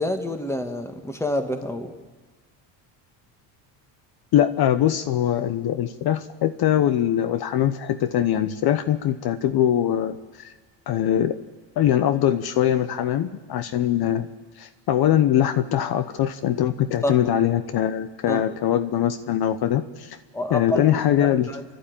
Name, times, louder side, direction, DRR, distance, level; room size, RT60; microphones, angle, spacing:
voice 1, 0.0-1.9 17.0-17.2 18.3-18.4 20.3-21.7, left 1 dB, 5° left, 6 dB, 2.0 m, -28 dB
voice 2, 4.3-10.5 10.9-11.4 11.8-14.3 14.6-20.2 20.5-21.5, left 11 dB, 55° left, 11 dB, 1.0 m, -22 dB
28.5 x 12.0 x 8.9 m, 1.3 s
cardioid pair, 115°, 44 cm